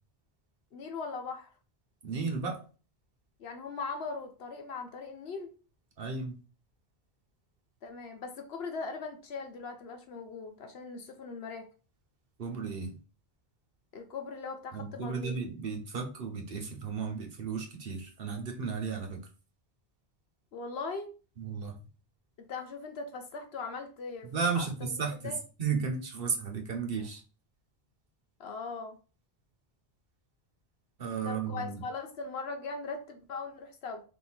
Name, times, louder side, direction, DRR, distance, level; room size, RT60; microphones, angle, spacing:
voice 1, 0.7-1.5 3.4-5.5 7.8-11.7 13.9-15.4 20.5-21.1 22.4-24.7 25.2-25.4 28.4-29.0 31.2-34.0, left 4 dB, 75° left, 5 dB, 1.1 m, -40 dB
voice 2, 2.0-2.6 6.0-6.3 12.4-12.9 14.7-19.2 21.4-21.8 24.2-27.2 31.0-31.8, right 5 dB, 60° right, 3 dB, 1.1 m, -34 dB
3.6 x 2.7 x 4.3 m, 0.35 s
omnidirectional pair, 1.1 m